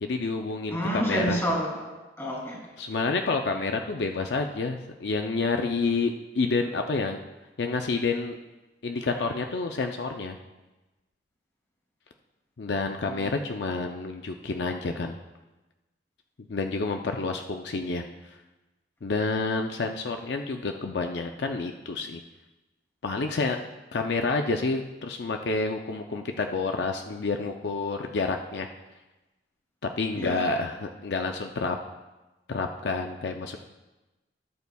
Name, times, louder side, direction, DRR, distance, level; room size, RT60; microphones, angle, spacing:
voice 1, 0.0-1.4 2.8-7.2 7.6-8.4 8.8-10.4 12.6-15.2 16.5-18.0 19.0-22.2 23.0-23.6 23.9-28.7 29.8-31.8 32.5-33.6, left 3 dB, 70° left, 4 dB, 0.5 m, -29 dB
voice 2, 0.7-2.6 13.1-13.2 30.1-30.5, equal, 15° left, -3 dB, 2.9 m, -29 dB
17.0 x 8.2 x 2.3 m, 1.1 s
head